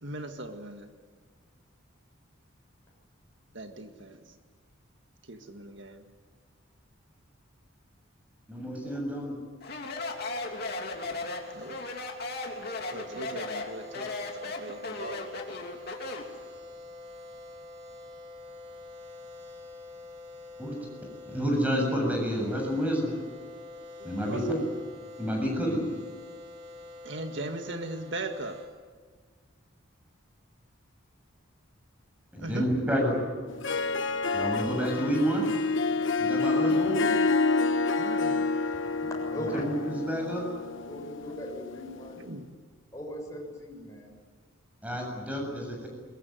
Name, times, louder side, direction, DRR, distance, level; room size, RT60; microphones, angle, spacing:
voice 1, 0.0-0.9 3.5-4.2 5.3-6.0 11.5-11.8 12.9-14.1 14.4-15.3 24.0-24.6 27.0-28.6 32.4-32.7 36.6-36.8 38.0-38.5 42.2-42.5, right 2 dB, 55° right, 5 dB, 1.9 m, -39 dB
voice 2, 8.5-9.4 20.6-20.8 21.3-23.1 24.0-24.4 25.2-25.8 32.3-33.2 34.3-35.5 36.2-37.1 39.4-40.4 44.8-45.9, equal, 5° right, 1 dB, 7.6 m, -29 dB
Speech, 9.6-16.3, left 3 dB, 50° left, 3.0 m, -36 dB
sound 1, 9.8-28.7, left 2 dB, 35° right, 5.6 m, -46 dB
Harp, 33.5-42.1, left 3 dB, 65° left, 1.1 m, -28 dB
voice 3, 39.3-39.6 40.8-42.2 42.9-44.1, equal, 15° left, -2 dB, 7.1 m, -39 dB
22.5 x 22.5 x 9.5 m, 1.5 s
head